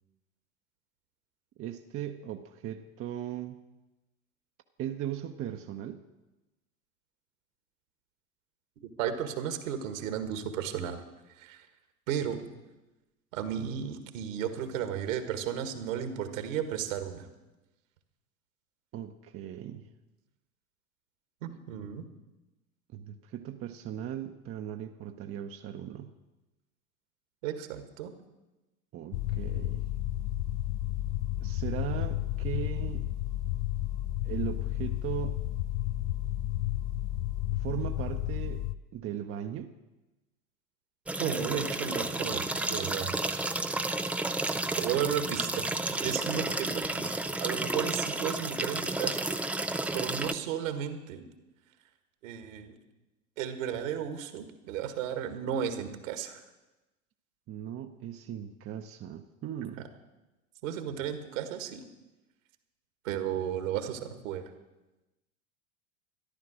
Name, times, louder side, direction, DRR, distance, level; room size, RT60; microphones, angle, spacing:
voice 1, 1.6-3.6 4.8-6.0 18.9-19.8 22.9-26.1 28.9-29.8 31.4-33.0 34.2-35.4 37.6-38.6 38.9-39.7 44.5-44.9 46.4-46.8 57.5-59.9, right 11 dB, 30° right, 6 dB, 0.8 m, -38 dB
voice 2, 8.8-11.0 11.4-11.7 12.1-12.4 13.3-17.3 21.4-22.0 27.4-28.1 41.2-42.4 42.7-43.2 44.8-45.7 46.0-47.1 47.4-49.2 49.5-51.2 52.2-52.8 53.4-56.4 60.6-61.8 63.0-64.5, right 9 dB, 65° right, 8 dB, 1.8 m, -34 dB
sound 1, 29.1-38.8, left 14 dB, 55° left, 0.6 m, -32 dB
sound 2, 41.1-50.3, right 2 dB, 5° right, 0.4 m, -32 dB
13.5 x 11.0 x 6.3 m, 1.0 s
hypercardioid pair, 85°, 42 cm